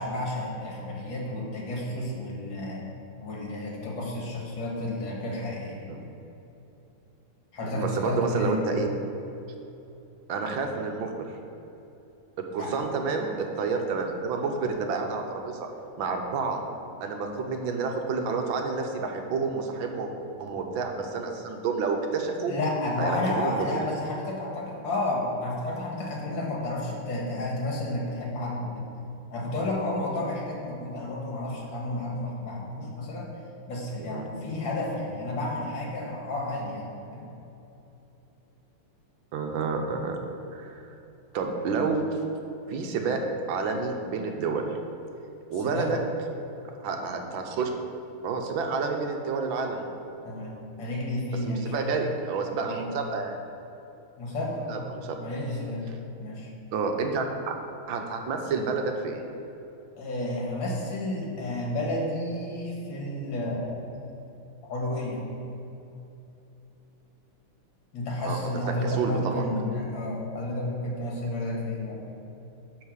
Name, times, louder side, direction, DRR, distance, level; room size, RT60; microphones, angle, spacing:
voice 1, 0.0-2.8 3.2-5.8 7.5-8.5 12.6-12.8 22.5-28.8 29.3-33.3 33.7-37.2 45.6-45.9 50.2-51.7 52.6-52.9 54.2-54.9 55.2-55.8 56.2-56.5 60.0-63.9 64.7-65.2 67.9-72.0, left 1 dB, 60° left, -3 dB, 2.3 m, -31 dB
voice 2, 7.6-8.9 10.3-11.3 12.4-15.7 16.0-16.6 17.0-20.1 20.4-22.5 23.0-23.8 34.0-34.3 39.3-40.2 40.5-40.8 41.3-42.0 42.7-43.2 43.5-44.7 45.5-46.0 46.8-47.7 48.2-49.8 51.4-53.4 54.7-55.2 56.7-57.6 57.9-59.2 68.2-69.4, right 4 dB, 70° right, 3 dB, 1.5 m, -29 dB
10.5 x 3.9 x 6.4 m, 2.9 s
omnidirectional pair, 2.4 m